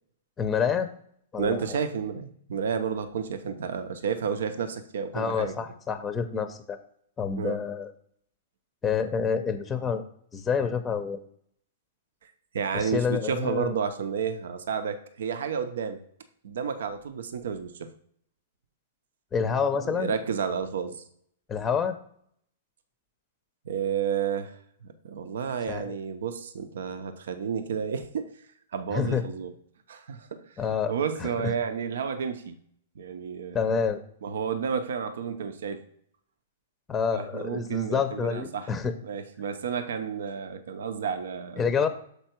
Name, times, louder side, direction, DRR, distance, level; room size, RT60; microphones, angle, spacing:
voice 1, 0.4-0.9 1.3-1.8 5.1-6.8 7.2-7.9 8.8-10.0 10.3-11.2 12.7-13.7 19.3-20.1 21.5-21.9 25.7-26.0 28.9-29.2 30.6-30.9 31.2-31.3 33.5-34.0 36.9-38.9 41.6-41.9, left 6 dB, 15° left, 10 dB, 0.6 m, -28 dB
voice 2, 1.4-5.5 7.4-7.6 12.2-16.0 16.4-17.9 19.8-21.0 23.7-24.6 25.0-28.3 28.7-29.5 29.9-32.6 33.0-33.6 34.2-35.8 37.1-38.7 39.0-41.7, right 7 dB, 75° right, 10 dB, 0.6 m, -31 dB
6.8 x 4.5 x 4.4 m, 0.65 s
hypercardioid pair, 140°, 0 cm